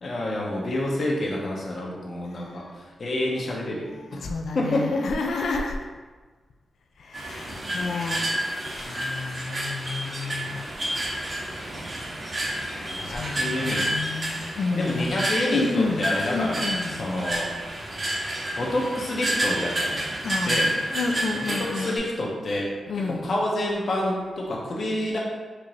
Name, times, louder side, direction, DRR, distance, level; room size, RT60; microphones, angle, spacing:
voice 1, 0.0-2.6 3.0-4.2 4.5-5.1 7.7-7.9 12.9-13.9 14.7-17.5 18.6-20.0 20.4-20.7 21.5-25.2, left 1 dB, 55° left, -3 dB, 0.8 m, -28 dB
voice 2, 2.2-2.8 4.1-5.8 7.0-8.3 8.7-10.6 13.0-15.2 15.5-17.1 20.2-22.0 22.9-23.3, left 4 dB, 75° left, 3 dB, 0.3 m, -30 dB
sound 1, 7.1-22.0, right 1 dB, 35° right, 0.7 m, -30 dB
4.4 x 2.5 x 3.1 m, 1.3 s
wide cardioid pair, 120°, 0 cm